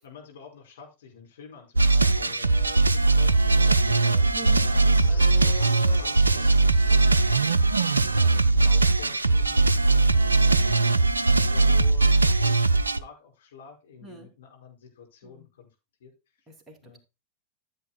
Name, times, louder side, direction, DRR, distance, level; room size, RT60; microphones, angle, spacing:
voice 1, 0.0-7.6 8.1-11.0 11.4-15.7 16.0-16.1 16.8-17.0, left 5 dB, 60° left, 0 dB, 4.9 m, -48 dB
sound 1, 1.8-13.0, right 3 dB, 80° right, 0.5 m, -20 dB
sound 2, 3.3-10.0 10.2-10.4 10.7-11.0, left 5 dB, 85° left, 3.2 m, -46 dB
voice 2, 6.9-7.2 14.0-14.3 15.2-15.5 16.5-17.0, right 2 dB, 10° right, 1 dB, 2.9 m, -45 dB
14.5 x 8.1 x 2.2 m, 0.27 s
figure-of-eight pair, 90°, 0 cm